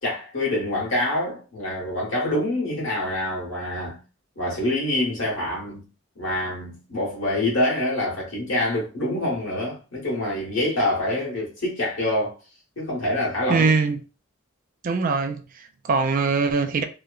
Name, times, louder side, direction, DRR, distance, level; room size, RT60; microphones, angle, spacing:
voice 1, 0.0-4.0 4.3-5.8 6.1-12.4 12.8-13.7, left 1 dB, 70° left, 1.3 m, -26 dB
voice 2, 13.5-14.0 14.8-16.8, right 4 dB, 45° right, 0.3 m, -22 dB
2.9 x 2.1 x 2.4 m
head